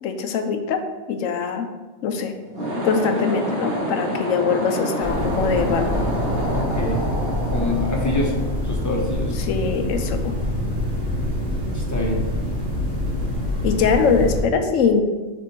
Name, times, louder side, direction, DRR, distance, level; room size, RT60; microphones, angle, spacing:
voice 1, 0.0-1.7 2.0-2.3 2.8-6.0 9.4-10.3 13.6-15.0, left 5 dB, 85° left, 7 dB, 1.0 m, -22 dB
sound 1, 2.4-9.0, right 1 dB, 50° right, 2.0 m, -28 dB
sound 2, 5.0-14.4, left 1 dB, 75° right, 2.2 m, -25 dB
voice 2, 6.5-7.1 7.5-9.3 11.7-12.2, left 2 dB, 15° left, -1 dB, 0.9 m, -26 dB
6.0 x 3.6 x 4.5 m, 1.2 s
omnidirectional pair, 1.3 m